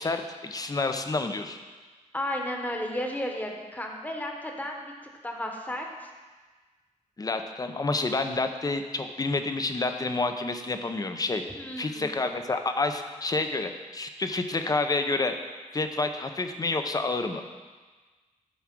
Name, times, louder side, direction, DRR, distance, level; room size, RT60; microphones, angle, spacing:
voice 1, 0.0-1.6 7.2-11.4 11.8-15.3 15.7-17.4, left 3 dB, 30° left, 7 dB, 0.7 m, -29 dB
voice 2, 2.1-4.9 5.2-6.1 11.6-12.1, left 1 dB, 10° left, 1 dB, 1.2 m, -33 dB
12.0 x 4.7 x 6.1 m, 1.3 s
wide cardioid pair, 135°, 13 cm